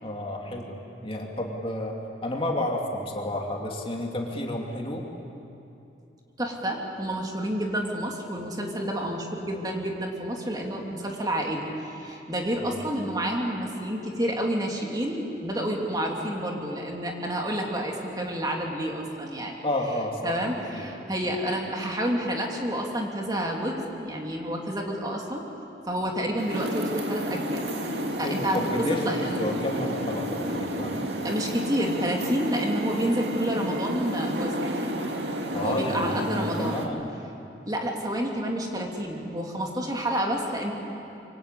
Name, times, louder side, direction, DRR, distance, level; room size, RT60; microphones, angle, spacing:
voice 1, 0.0-5.1 12.6-12.7 19.6-20.3 20.7-20.9 28.1-31.0 35.5-37.0, left 1 dB, 30° left, 0 dB, 2.7 m, -31 dB
voice 2, 6.4-19.5 20.2-25.4 25.9-27.6 28.2-29.5 31.2-34.5 35.5-36.9 37.7-40.7, right 1 dB, 20° right, 0 dB, 2.7 m, -29 dB
sound 1, 26.4-36.9, equal, 65° right, 2.5 m, -31 dB
26.5 x 24.5 x 8.3 m, 2.8 s
head